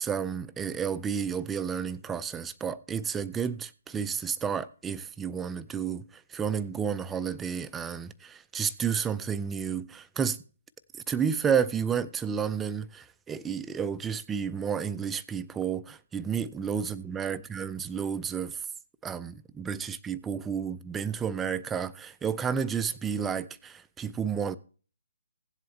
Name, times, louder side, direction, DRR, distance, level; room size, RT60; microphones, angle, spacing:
voice 1, 0.0-6.0 6.3-10.4 11.1-18.6 19.0-24.6, right 7 dB, 10° right, 0.4 m, -31 dB
16.5 x 7.7 x 3.2 m
figure-of-eight pair, 140°, 0 cm